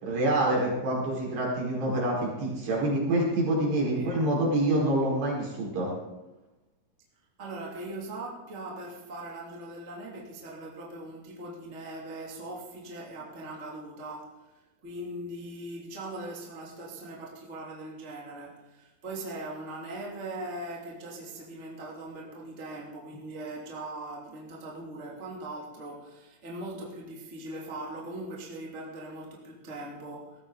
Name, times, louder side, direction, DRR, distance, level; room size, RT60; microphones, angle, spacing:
voice 1, 0.0-5.9, right 1 dB, 70° right, -4 dB, 7.0 m, -26 dB
voice 2, 7.4-30.4, right 1 dB, 20° right, -3 dB, 2.4 m, -40 dB
18.5 x 14.5 x 4.0 m, 1.0 s
omnidirectional pair, 5.0 m